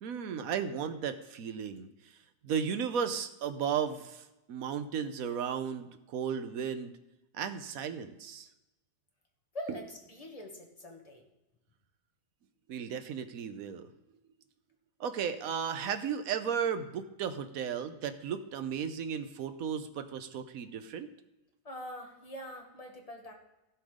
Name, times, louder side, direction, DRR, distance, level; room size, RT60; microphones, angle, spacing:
voice 1, 0.0-1.9 2.4-6.9 7.3-8.5 12.7-13.9 15.0-21.1, right 7 dB, 65° right, 10 dB, 1.1 m, -35 dB
voice 2, 9.5-11.2 21.6-23.3, left 1 dB, 25° left, 1 dB, 1.7 m, -44 dB
16.0 x 5.8 x 5.0 m, 0.99 s
omnidirectional pair, 1.7 m